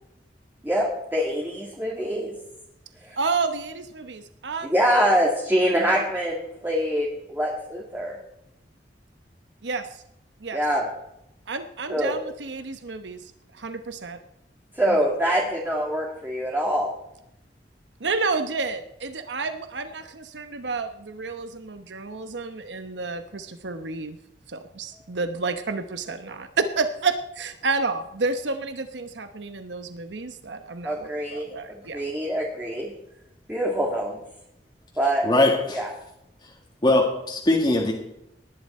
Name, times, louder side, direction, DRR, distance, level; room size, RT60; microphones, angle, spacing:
voice 1, 0.6-2.3 3.0-3.2 4.7-8.2 10.5-10.9 11.9-12.1 14.8-16.9 30.8-32.9 33.5-34.2 35.0-35.2 35.7-35.9, equal, 10° right, -2 dB, 2.0 m, -25 dB
voice 2, 3.2-4.7 9.6-9.8 10.4-10.6 11.5-14.2 14.9-15.0 18.0-24.2 24.5-32.0, right 4 dB, 90° right, 9 dB, 1.0 m, -30 dB
voice 3, 35.2-35.8 36.8-37.9, left 2 dB, 25° left, -1 dB, 1.8 m, -20 dB
18.5 x 11.0 x 4.3 m, 0.81 s
head